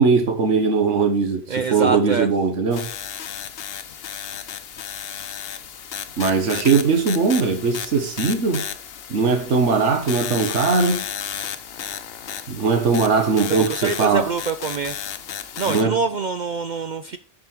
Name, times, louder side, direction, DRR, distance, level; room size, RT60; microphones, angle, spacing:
voice 1, 0.0-2.9 6.2-8.6 9.1-11.0 12.5-14.3 15.6-15.9, right 4 dB, 85° right, 1.6 m, -20 dB
voice 2, 1.5-2.3 13.5-15.0 15.6-17.2, right 5 dB, 55° right, 0.5 m, -25 dB
sound 1, 2.7-15.8, left 8 dB, 60° left, 0.9 m, -33 dB
9.0 x 5.3 x 4.5 m
omnidirectional pair, 1.2 m